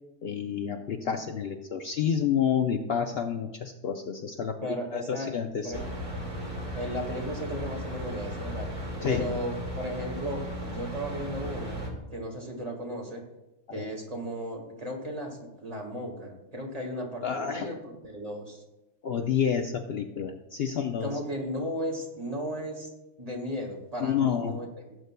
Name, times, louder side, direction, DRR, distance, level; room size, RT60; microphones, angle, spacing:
voice 1, 0.2-5.8 9.0-9.3 13.7-13.9 17.2-17.8 19.0-21.1 24.0-24.6, left 8 dB, 60° left, 5 dB, 0.7 m, -29 dB
voice 2, 4.4-5.3 5.6-6.0 6.7-8.7 9.0-11.8 12.1-13.2 13.7-18.6 21.0-22.9 23.2-24.9, equal, 30° right, 0 dB, 1.9 m, -35 dB
sound 1, 5.7-11.9, right 1 dB, 55° right, 2.4 m, -36 dB
17.5 x 7.9 x 2.2 m, 0.95 s
omnidirectional pair, 1.3 m